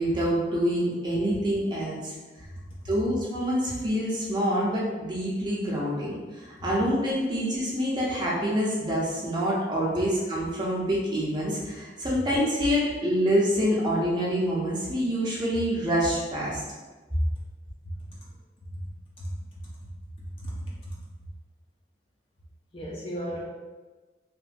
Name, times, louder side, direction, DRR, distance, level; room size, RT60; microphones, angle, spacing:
voice 1, 0.0-2.1 2.8-16.6, equal, 25° right, -6 dB, 0.6 m, -26 dB
voice 2, 2.5-2.9 6.9-7.0 18.1-18.3 18.7-18.8 19.2-19.3 20.2-20.9 22.7-23.4, equal, 30° left, -5 dB, 0.4 m, -36 dB
3.0 x 2.1 x 2.5 m, 1.3 s
head